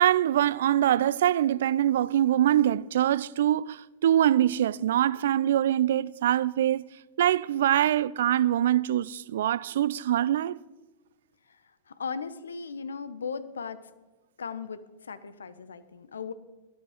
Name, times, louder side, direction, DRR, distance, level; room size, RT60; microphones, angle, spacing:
voice 1, 0.0-6.8 7.2-10.6, right 11 dB, 70° right, 0.4 m, -24 dB
voice 2, 11.5-13.9 14.4-16.3, left 5 dB, 80° left, 1.0 m, -37 dB
19.0 x 12.5 x 5.1 m
hypercardioid pair, 100°, 0 cm